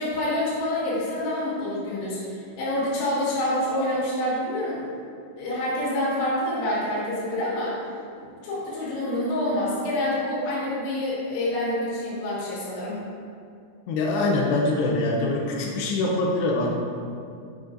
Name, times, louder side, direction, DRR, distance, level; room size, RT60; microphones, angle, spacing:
voice 1, 0.0-4.9 5.4-7.8 8.2-13.0, left 1 dB, 70° left, -8 dB, 4.1 m, -27 dB
voice 2, 13.9-16.8, left 2 dB, 85° left, -1 dB, 2.3 m, -24 dB
8.0 x 7.1 x 2.6 m, 2.4 s
omnidirectional pair, 5.7 m